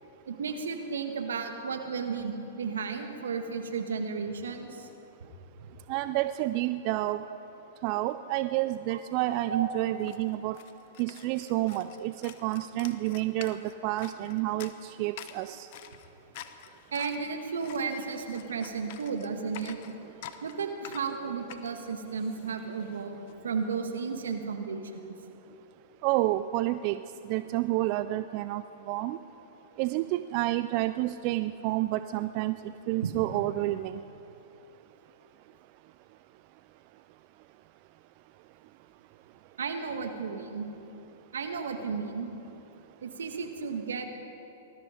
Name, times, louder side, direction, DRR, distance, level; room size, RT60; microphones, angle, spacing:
voice 1, 0.3-4.9 5.6-5.7 7.3-7.4 8.9-9.0 9.5-9.8 11.6-11.7 16.9-19.8 20.4-25.0 33.0-33.1 39.6-40.7 41.3-42.4 43.0-44.1, right 5 dB, 80° right, 5 dB, 1.7 m, -34 dB
voice 2, 5.9-7.2 7.8-10.6 11.0-15.7 26.0-27.0 27.3-29.2 29.8-34.0, right 16 dB, 45° right, 12 dB, 0.4 m, -29 dB
sound 1, 9.2-9.3 9.5-23.3, left 11 dB, 55° left, 1.0 m, -49 dB
20.0 x 13.0 x 5.2 m, 3.0 s
hypercardioid pair, 110°, 0 cm